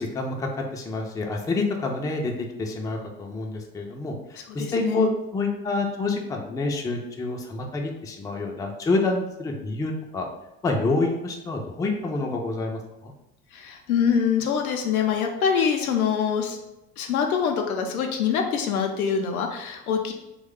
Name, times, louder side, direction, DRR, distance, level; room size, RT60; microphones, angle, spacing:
voice 1, 0.0-10.3 10.6-13.1, left 2 dB, 10° left, 2 dB, 0.4 m, -28 dB
voice 2, 4.5-5.1 13.5-16.6 17.0-20.1, left 7 dB, 85° left, 3 dB, 0.6 m, -24 dB
3.0 x 2.3 x 3.5 m, 0.93 s
hypercardioid pair, 75°, 43 cm